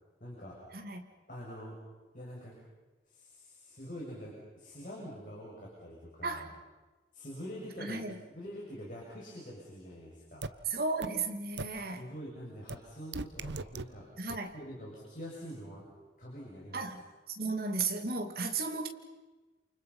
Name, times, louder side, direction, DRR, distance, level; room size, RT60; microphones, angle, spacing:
voice 1, 0.2-0.9 1.3-1.8 2.1-2.6 3.1-6.5 7.1-8.0 8.3-10.5 12.0-14.2 14.5-15.9 16.2-16.9, equal, 45° left, 6.7 m, -45 dB
voice 2, 0.7-1.1 6.2-6.5 7.8-8.2 10.7-12.0 14.2-14.5 16.7-17.0 17.4-18.9, right 3 dB, 55° right, 2.7 m, -34 dB
sound 1, 10.4-10.5 11.0-11.1 11.6-11.7 12.7-12.8 13.1-13.8 14.3-14.4, right 3 dB, 80° right, 0.9 m, -36 dB
28.5 x 28.5 x 5.6 m
head